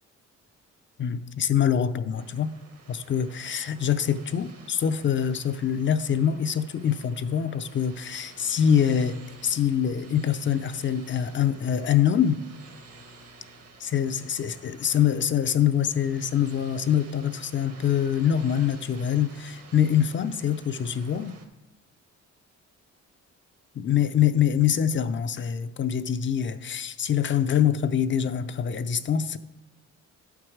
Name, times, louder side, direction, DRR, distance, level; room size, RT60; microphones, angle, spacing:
voice 1, 1.0-2.5 2.9-12.4 13.8-21.3 23.7-29.4, left 9 dB, 40° left, 11 dB, 0.5 m, -24 dB
sound 1, 2.1-21.5, right 3 dB, 55° right, 1.2 m, -50 dB
11.5 x 4.6 x 4.9 m, 1.0 s
cardioid pair, 90°, 30 cm